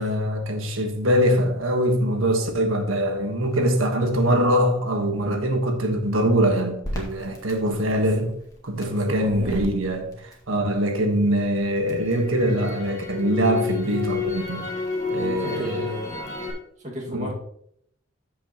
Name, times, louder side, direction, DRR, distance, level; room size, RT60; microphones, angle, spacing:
voice 1, 0.0-8.3 8.6-10.1 10.5-14.7 15.1-15.9 17.1-17.3, equal, 85° right, 1.3 m, -23 dB
Crackle, 6.8-11.0 11.4-16.5, left 4 dB, 20° left, 1.8 m, -32 dB
voice 2, 7.6-8.3 8.8-9.7 15.2-16.6 16.8-17.3, equal, 35° right, 2.0 m, -37 dB
13.5 x 5.5 x 3.0 m
head